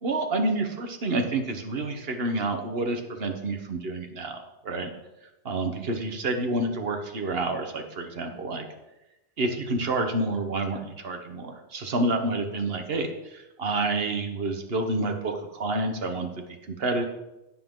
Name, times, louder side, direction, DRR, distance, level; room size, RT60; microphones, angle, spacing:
voice 1, 0.0-4.4 4.6-4.9 5.4-8.6 9.4-16.3 16.7-17.0, right 2 dB, 55° right, 5 dB, 1.5 m, -28 dB
16.5 x 7.3 x 3.8 m, 0.98 s
omnidirectional pair, 1.3 m